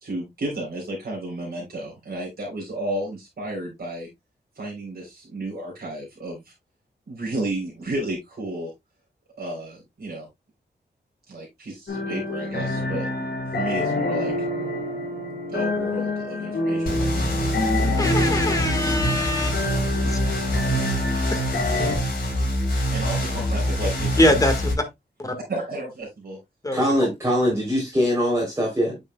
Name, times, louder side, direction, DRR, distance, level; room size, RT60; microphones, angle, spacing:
voice 1, 0.0-4.1 4.6-6.5 7.1-8.7 9.4-10.3 11.3-13.1 13.5-14.3 15.5-16.9 20.9-21.4 22.9-24.4 25.5-26.4, right 1 dB, 60° right, 3.8 m, -32 dB
sound 1, 11.9-22.0, left 2 dB, 70° left, 3.8 m, -27 dB
sound 2, 16.9-24.7, equal, 55° left, 4.5 m, -25 dB
voice 2, 18.0-19.5 20.0-20.2 21.3-21.4 24.2-24.7 25.2-25.4 26.6-26.8, left 1 dB, 20° left, 1.6 m, -22 dB
voice 3, 26.7-29.0, equal, 15° right, 3.5 m, -22 dB
9.0 x 6.3 x 2.3 m
wide cardioid pair, 170°, 18 cm